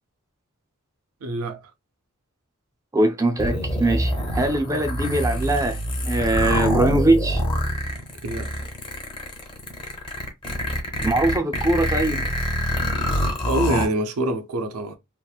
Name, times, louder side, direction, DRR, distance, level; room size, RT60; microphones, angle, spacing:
voice 1, 1.2-1.6 8.2-8.5 13.5-15.0, right 2 dB, 75° right, 0.5 m, -25 dB
voice 2, 2.9-7.4 11.0-12.2, right 2 dB, 15° right, 0.4 m, -22 dB
sound 1, 3.4-13.9, equal, 20° left, 0.7 m, -25 dB
2.9 x 2.5 x 2.2 m
head